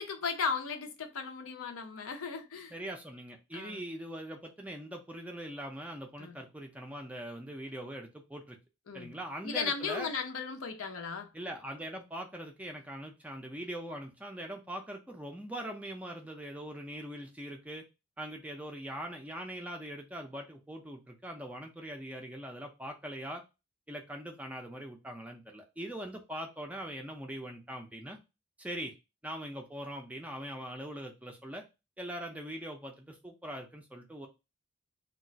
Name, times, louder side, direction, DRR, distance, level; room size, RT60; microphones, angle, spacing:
voice 1, 0.0-2.7 3.5-3.8 6.2-6.4 8.9-9.1 9.4-11.3, left 5 dB, 80° left, 0.6 m, -36 dB
voice 2, 2.7-8.6 8.9-10.1 11.3-17.8 18.2-23.4 23.9-28.2 28.6-28.9 29.2-31.6 32.0-34.3, right 1 dB, 5° right, 0.3 m, -42 dB
2.4 x 2.2 x 3.8 m
head